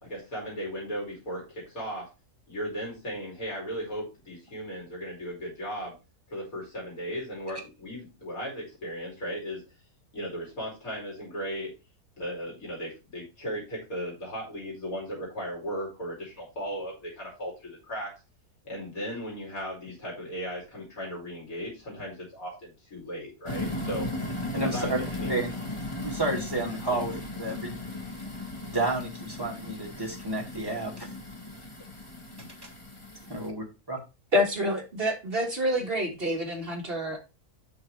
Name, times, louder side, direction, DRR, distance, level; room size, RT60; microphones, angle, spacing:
voice 1, 0.0-2.1 2.5-6.0 6.3-9.6 10.1-11.7 12.2-18.1 18.6-24.1 24.6-25.4 26.9-27.0, equal, 60° left, -3 dB, 3.3 m, -36 dB
sound 1, 23.5-33.5, left 2 dB, 20° left, 1.3 m, -36 dB
voice 2, 24.5-25.0 25.3-25.5 26.0-27.7 28.7-31.1 32.6-32.7 33.3-34.0, right 2 dB, 15° right, 0 dB, 2.1 m, -31 dB
voice 3, 34.3-37.2, equal, 40° right, 1 dB, 1.8 m, -27 dB
8.3 x 5.7 x 3.2 m, 0.28 s
omnidirectional pair, 1.6 m